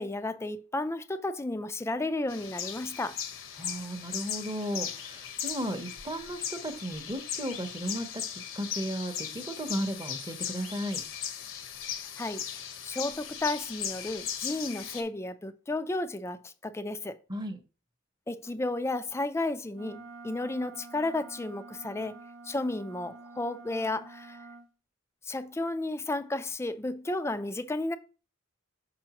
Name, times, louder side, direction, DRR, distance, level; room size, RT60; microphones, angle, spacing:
voice 1, 0.0-3.2 12.2-17.2 18.3-22.1 22.4-24.4 25.2-28.0, left 2 dB, 15° left, 0.4 m, -33 dB
sound 1, 2.3-15.0, left 9 dB, 65° left, 0.9 m, -38 dB
voice 2, 3.6-11.0 17.3-17.6, equal, 20° right, 0.7 m, -35 dB
Wind instrument woodwind instrument, 19.7-24.7, right 3 dB, 65° right, 0.7 m, -48 dB
6.1 x 5.7 x 2.9 m
head